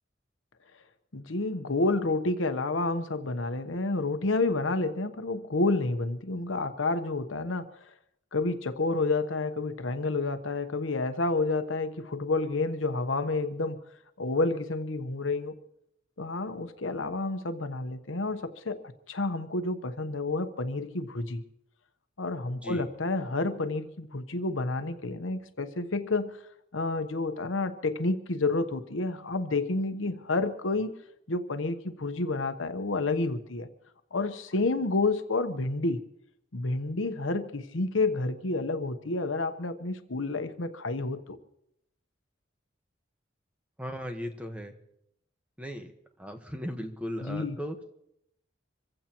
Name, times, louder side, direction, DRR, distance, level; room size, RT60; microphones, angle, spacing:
voice 1, 1.1-7.7 8.3-13.8 14.2-15.5 16.2-21.4 22.2-26.4 26.7-30.9 31.3-33.7 34.1-36.0 36.5-41.4 47.2-47.6, left 3 dB, 85° left, 8 dB, 1.1 m, -29 dB
voice 2, 22.5-22.9 43.8-44.7 45.6-45.9 46.2-47.8, equal, 5° right, 5 dB, 1.3 m, -37 dB
26.5 x 15.5 x 3.0 m, 0.78 s
head